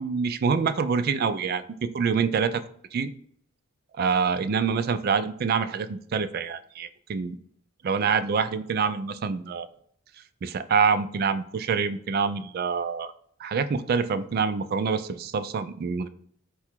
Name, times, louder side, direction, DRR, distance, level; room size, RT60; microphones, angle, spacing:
voice 1, 0.0-1.6 1.9-2.6 2.9-3.1 4.0-7.4 7.8-9.7 10.4-13.1 13.4-16.1, right 5 dB, 45° right, 12 dB, 0.3 m, -26 dB
4.7 x 2.3 x 4.3 m, 0.62 s
head